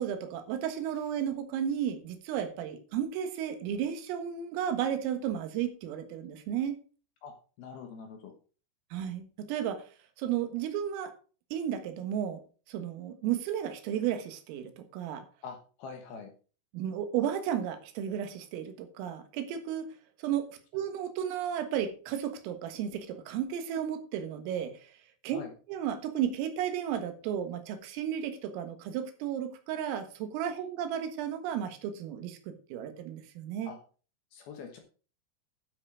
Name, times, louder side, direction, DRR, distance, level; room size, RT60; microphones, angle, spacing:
voice 1, 0.0-6.8 8.9-9.8 10.2-11.1 11.5-12.4 12.7-15.3 16.7-19.9 20.2-20.5 20.7-24.7 25.2-25.4 25.7-33.7, right 9 dB, 90° right, 8 dB, 4.1 m, -33 dB
voice 2, 7.2-8.3 15.4-16.3 25.3-25.5 33.7-33.8 34.3-34.8, left 5 dB, 65° left, 4 dB, 2.6 m, -44 dB
11.5 x 7.8 x 4.8 m, 0.38 s
omnidirectional pair, 5.8 m